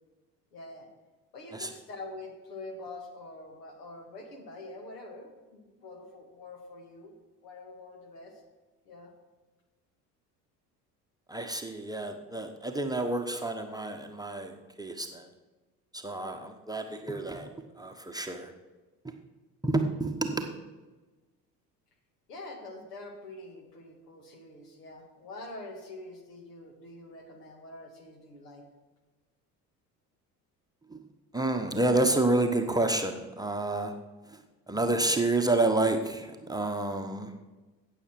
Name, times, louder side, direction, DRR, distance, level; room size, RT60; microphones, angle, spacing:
voice 1, 0.5-0.9 1.3-7.1 7.4-8.4 8.9-9.1 22.3-28.7, left 2 dB, 75° left, 4 dB, 2.0 m, -45 dB
voice 2, 11.3-15.3 15.9-17.5 17.8-18.5 19.0-19.1 19.6-20.5 30.9-31.0 31.3-33.9 34.7-37.3, right 2 dB, 10° right, 4 dB, 1.0 m, -29 dB
17.0 x 6.6 x 4.5 m, 1.2 s
figure-of-eight pair, 60°, 48 cm